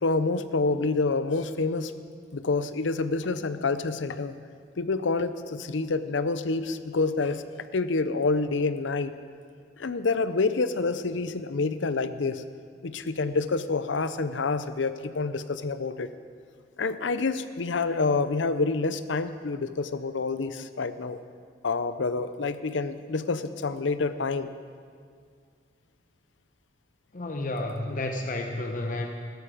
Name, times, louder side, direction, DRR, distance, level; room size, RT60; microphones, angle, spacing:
voice 1, 0.0-1.9 2.3-4.3 4.8-7.4 7.7-9.1 9.8-12.4 12.8-16.1 16.8-21.2 21.6-24.5, left 3 dB, 80° left, 12 dB, 0.7 m, -27 dB
voice 2, 27.1-29.1, left 2 dB, 45° left, 4 dB, 0.9 m, -31 dB
16.0 x 12.5 x 5.0 m, 2.1 s
head